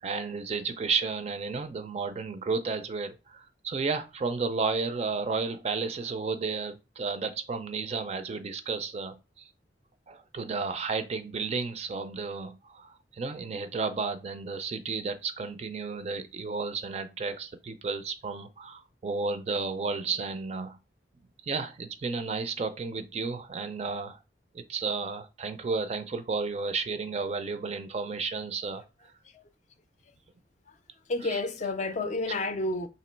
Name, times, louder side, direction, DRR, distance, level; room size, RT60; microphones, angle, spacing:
voice 1, 0.0-9.5 10.1-20.8 21.4-24.2 24.5-28.8 31.2-31.4 32.3-32.4, right 4 dB, 35° right, 0.4 m, -32 dB
voice 2, 31.1-32.9, left 2 dB, 40° left, 0.4 m, -30 dB
2.9 x 2.8 x 4.3 m
head